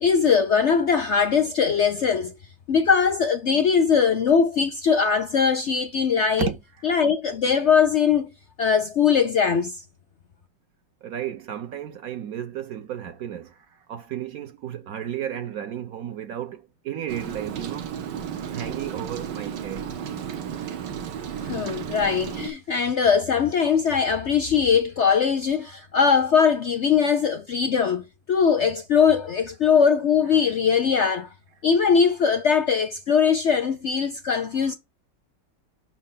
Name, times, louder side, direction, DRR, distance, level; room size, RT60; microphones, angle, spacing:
voice 1, 0.0-2.3 2.7-6.5 6.8-8.3 8.6-9.7 21.4-28.0 28.3-31.3 31.6-34.7, left 6 dB, 60° left, 0.7 m, -21 dB
voice 2, 6.4-6.9 11.0-17.9 18.5-19.9 21.7-21.9, right 10 dB, 65° right, 1.1 m, -33 dB
Rain, 17.1-22.5, right 8 dB, 80° right, 1.5 m, -33 dB
6.0 x 4.4 x 5.6 m
omnidirectional pair, 1.9 m